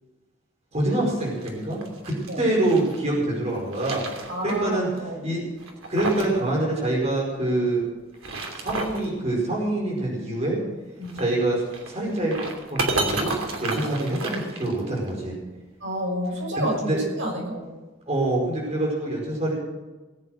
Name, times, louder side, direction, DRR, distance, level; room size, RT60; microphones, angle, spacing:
voice 1, 0.7-4.9 5.2-5.4 5.9-7.8 8.5-10.6 11.1-12.4 12.7-13.3 13.6-15.4 16.5-17.0 18.1-19.5, right 1 dB, 30° right, -2 dB, 4.9 m, -25 dB
sound 1, 1.2-3.0 3.5-4.7 5.0-5.1 5.6-6.4 6.7-6.8 8.0-9.1 11.0-15.1, right 2 dB, 85° right, 2.9 m, -31 dB
voice 2, 4.3-5.2 11.0-11.2 15.8-17.7, equal, 65° right, -1 dB, 6.4 m, -30 dB
20.0 x 8.7 x 6.6 m, 1.2 s
head